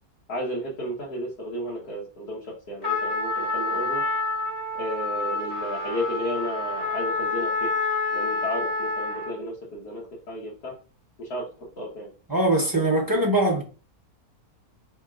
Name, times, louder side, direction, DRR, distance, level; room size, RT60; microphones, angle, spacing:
voice 1, 0.3-4.0 4.7-7.7 8.1-10.7 11.2-11.5 11.8-12.1, equal, 85° left, 1.9 m, -33 dB
Trumpet, 2.8-9.4, left 3 dB, 25° left, 1.2 m, -28 dB
voice 2, 12.3-13.6, right 1 dB, 30° right, 0.4 m, -22 dB
4.6 x 3.6 x 2.4 m
omnidirectional pair, 1.7 m